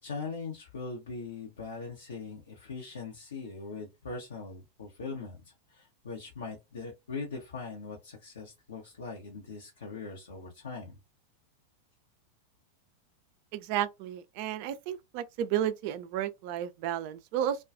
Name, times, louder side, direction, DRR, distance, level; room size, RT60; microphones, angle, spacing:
voice 1, 0.0-11.0, left 4 dB, 65° left, 0.7 m, -41 dB
voice 2, 13.5-17.6, right 11 dB, 45° right, 0.3 m, -32 dB
2.3 x 2.3 x 2.5 m
figure-of-eight pair, 90°, 0 cm